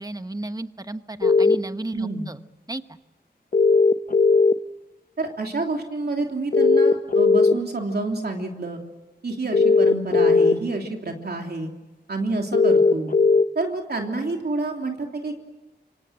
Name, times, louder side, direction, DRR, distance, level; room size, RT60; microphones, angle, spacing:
voice 1, 0.0-2.4 2.7-3.0, right 2 dB, 20° right, 10 dB, 1.2 m, -33 dB
sound 1, 1.2-1.6 3.5-4.5 6.5-7.5 9.5-10.5 12.5-13.4, left 4 dB, 50° left, 0.8 m, -17 dB
voice 2, 1.9-2.3 5.2-8.8 9.2-11.7 12.1-13.1 13.5-15.4, right 3 dB, 65° right, 2 dB, 3.2 m, -28 dB
27.0 x 24.0 x 7.6 m, 1.1 s
wide cardioid pair, 75°, 18 cm